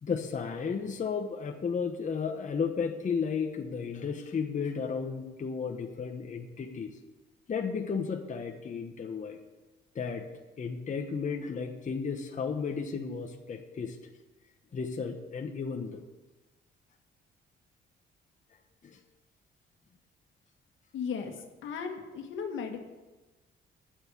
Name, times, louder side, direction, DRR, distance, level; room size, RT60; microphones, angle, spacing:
voice 1, 0.0-6.9 7.5-9.4 9.9-10.3 10.6-14.0 14.7-16.0 18.8-19.0, left 5 dB, 40° left, 4 dB, 1.1 m, -33 dB
voice 2, 20.9-21.3 21.6-22.8, left 6 dB, 80° left, 4 dB, 1.8 m, -35 dB
9.5 x 8.0 x 8.3 m, 1.1 s
cardioid pair, 90°, 20 cm